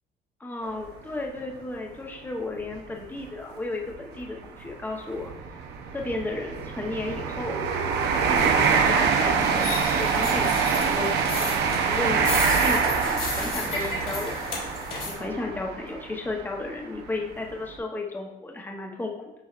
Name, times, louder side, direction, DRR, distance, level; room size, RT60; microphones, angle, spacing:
voice 1, 0.4-5.3 5.9-7.6 8.3-9.7 10.0-14.4 15.0-19.3, left 2 dB, 10° left, 1 dB, 0.8 m, -34 dB
sound 1, 0.6-0.8 1.4-1.5 2.6-2.8 3.0-3.2 3.9-16.6 17.2-17.3, right 5 dB, 80° right, 0.7 m, -25 dB
sound 2, 9.4-15.1, left 3 dB, 60° left, 2.2 m, -34 dB
7.2 x 5.6 x 2.5 m, 0.99 s
cardioid pair, 110°, 17 cm